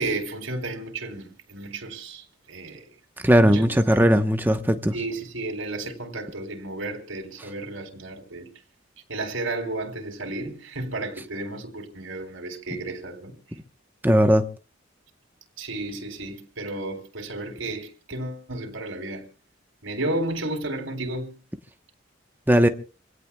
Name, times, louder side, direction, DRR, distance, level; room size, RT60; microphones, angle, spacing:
voice 1, 0.0-2.9 3.4-4.2 4.9-8.5 9.1-13.3 15.6-19.3 19.8-21.4, right 2 dB, 80° right, 3.8 m, -32 dB
voice 2, 3.2-4.9 12.7-12.8 14.0-14.4 22.5-22.7, equal, 10° right, 1.0 m, -18 dB
28.0 x 17.0 x 2.3 m
head